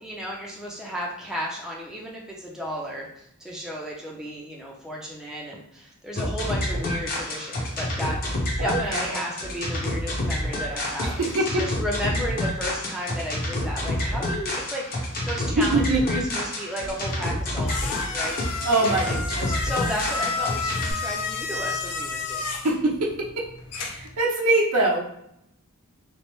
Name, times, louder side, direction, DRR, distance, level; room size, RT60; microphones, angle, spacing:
voice 1, 0.0-3.1 3.4-8.2 8.6-14.9 15.3-22.5, equal, 5° right, -3 dB, 0.4 m, -33 dB
sound 1, 6.1-20.9, left 1 dB, 40° left, 0.7 m, -28 dB
voice 2, 8.6-9.0 11.2-11.6 15.6-16.0 18.6-19.0 19.3-19.5 22.5-23.1 23.8-25.0, right 2 dB, 75° right, -2 dB, 0.7 m, -23 dB
sound 2, 16.9-24.2, left 4 dB, 75° left, 0.4 m, -32 dB
3.1 x 2.0 x 3.0 m, 0.75 s
head